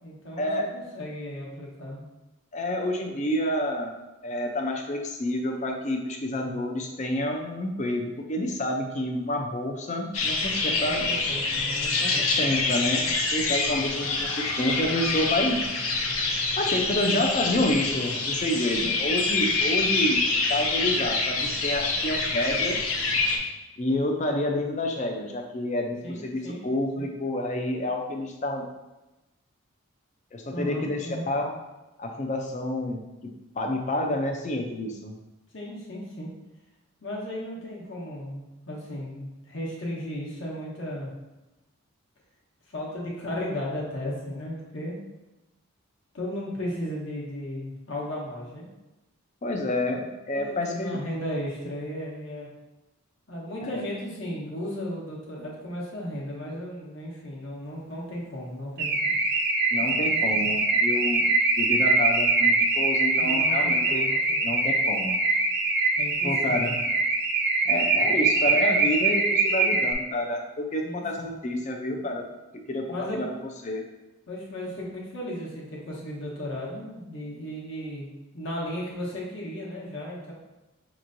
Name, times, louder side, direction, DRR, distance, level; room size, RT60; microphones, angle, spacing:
voice 1, 0.0-2.0 10.6-12.2 18.8-19.0 26.0-26.6 27.0-27.1 30.5-31.3 35.5-36.3 37.0-41.1 42.7-45.0 46.1-48.7 50.3-52.5 53.3-59.2 63.2-64.6 66.0-66.7 70.8-71.0 72.9-73.2 74.3-78.1 78.3-80.3, left 1 dB, 60° left, -4 dB, 1.1 m, -35 dB
voice 2, 2.5-3.9 4.2-11.1 12.0-15.6 16.6-22.9 23.8-28.6 30.3-31.5 32.0-33.0 33.6-35.1 49.4-51.0 53.6-53.8 59.7-61.3 61.6-64.1 64.4-65.2 66.2-66.8 67.7-72.3 72.7-73.8, left 1 dB, 35° left, 3 dB, 0.4 m, -29 dB
sound 1, 10.1-23.4, left 3 dB, 75° left, 0.6 m, -26 dB
Car / Alarm, 58.8-69.9, right 3 dB, 45° right, 0.5 m, -23 dB
5.4 x 3.0 x 2.6 m, 1.0 s
head